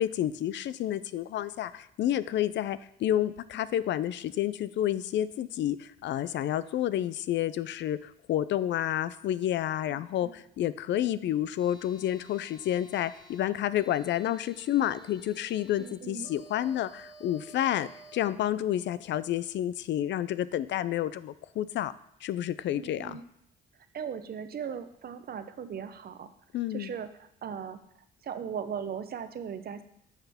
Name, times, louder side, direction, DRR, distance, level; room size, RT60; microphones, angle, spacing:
voice 1, 0.0-21.9 22.2-23.2 26.5-26.9, left 12 dB, 65° left, 16 dB, 0.4 m, -30 dB
voice 2, 9.9-10.4 15.8-16.3 22.7-23.2 23.9-26.3 26.7-29.8, right 7 dB, 50° right, 10 dB, 0.7 m, -38 dB
sound 1, 11.6-18.3, right 1 dB, ahead, 2.5 m, -53 dB
10.0 x 5.8 x 3.5 m, 0.75 s
cardioid pair, 90°, 20 cm